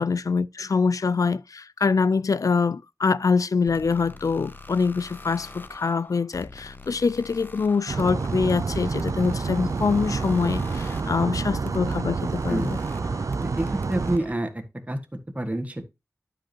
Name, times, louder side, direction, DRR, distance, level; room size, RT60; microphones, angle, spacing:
voice 1, 0.0-12.8, left 5 dB, 75° left, 0.4 m, -24 dB
sound 1, 3.7-14.3, left 2 dB, 35° left, 0.7 m, -44 dB
sound 2, 7.9-14.2, right 4 dB, 70° right, 0.4 m, -28 dB
voice 2, 13.4-15.8, right 1 dB, 25° right, 1.6 m, -29 dB
11.5 x 5.2 x 2.8 m
wide cardioid pair, 75°, 6 cm